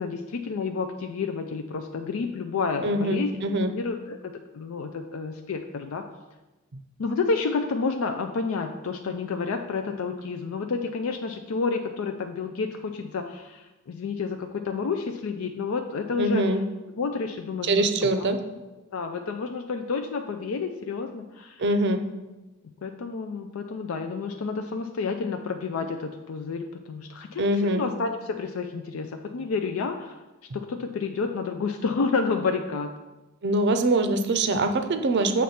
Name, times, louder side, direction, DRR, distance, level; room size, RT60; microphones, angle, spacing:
voice 1, 0.0-3.3 3.6-6.0 7.0-16.6 17.0-17.8 18.1-18.3 18.9-21.6 22.6-30.2 30.5-32.9, left 4 dB, 70° left, 5 dB, 0.4 m, -30 dB
voice 2, 2.8-3.7 16.2-16.6 17.6-18.4 21.6-22.0 27.4-27.8 33.4-35.4, right 2 dB, 55° right, 8 dB, 0.5 m, -23 dB
7.0 x 3.1 x 5.7 m, 1.1 s
head